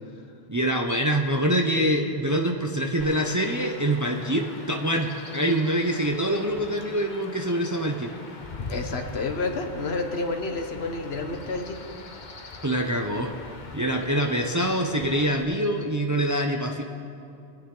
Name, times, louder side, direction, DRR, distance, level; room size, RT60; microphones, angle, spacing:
voice 1, 0.5-8.1 12.6-13.3 13.7-16.8, right 1 dB, 20° right, 2 dB, 0.6 m, -25 dB
Chirp tweet / Wind / Stream, 3.0-15.4, left 3 dB, 45° left, 1.1 m, -42 dB
voice 2, 8.7-11.9, left 3 dB, 70° left, 5 dB, 1.3 m, -30 dB
23.5 x 8.8 x 3.8 m, 2.6 s
omnidirectional pair, 1.1 m